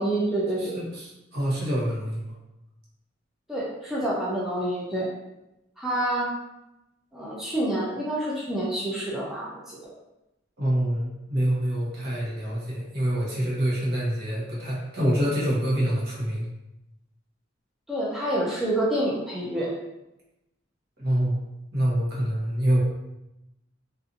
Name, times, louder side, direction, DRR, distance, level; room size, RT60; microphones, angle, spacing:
voice 1, 0.0-0.8 3.5-5.1 5.8-6.3 7.1-9.8 17.9-19.7, right 1 dB, ahead, -7 dB, 0.4 m, -27 dB
voice 2, 0.6-2.3 10.6-16.5 21.0-21.4 21.7-22.8, equal, 55° right, -6 dB, 0.9 m, -26 dB
2.6 x 2.4 x 2.5 m, 0.92 s
head